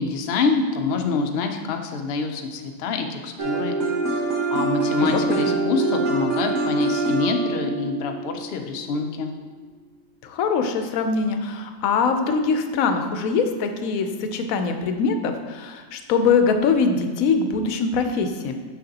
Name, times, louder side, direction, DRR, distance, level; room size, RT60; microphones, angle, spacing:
voice 1, 0.0-3.8 4.1-9.3, left 4 dB, 60° left, 4 dB, 0.7 m, -26 dB
sound 1, 3.4-9.2, right 2 dB, 85° right, 1.4 m, -25 dB
voice 2, 5.0-5.6 10.2-18.5, left 5 dB, 85° left, 6 dB, 1.0 m, -23 dB
6.5 x 5.9 x 2.8 m, 1.4 s
omnidirectional pair, 1.4 m